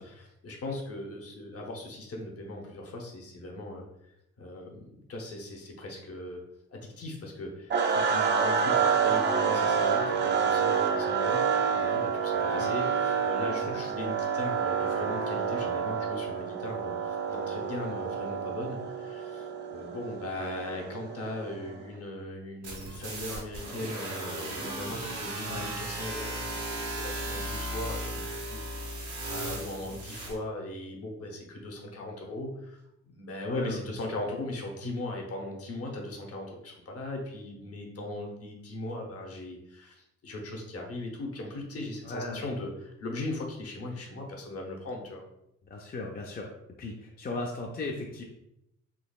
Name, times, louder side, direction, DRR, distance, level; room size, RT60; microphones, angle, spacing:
voice 1, 0.0-4.1 4.4-6.4 6.7-32.8 33.1-45.2, left 1 dB, 50° left, 1 dB, 0.8 m, -38 dB
sound 1, 7.7-21.8, right 6 dB, 35° right, 0.4 m, -28 dB
voice 2, 13.4-13.7 25.5-25.7 33.5-33.8 42.0-42.4 45.7-46.5 46.8-48.2, left 2 dB, 30° left, 0 dB, 0.4 m, -37 dB
sound 2, 22.6-30.3, right 1 dB, 75° right, 1.3 m, -36 dB
3.9 x 2.9 x 2.3 m, 0.82 s
cardioid pair, 120°, 30 cm